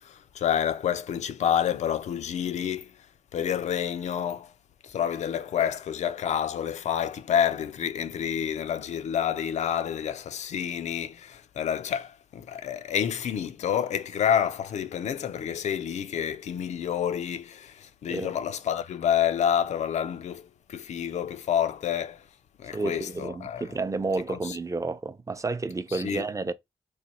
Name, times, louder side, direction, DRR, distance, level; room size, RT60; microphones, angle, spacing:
voice 1, 0.0-3.1 3.3-4.5 4.8-22.2 22.6-23.6 24.3-24.6 25.9-26.3, left 9 dB, 75° left, 0.4 m, -28 dB
voice 2, 22.7-26.5, right 3 dB, 25° right, 0.5 m, -31 dB
3.1 x 2.2 x 4.0 m
supercardioid pair, 45°, 12 cm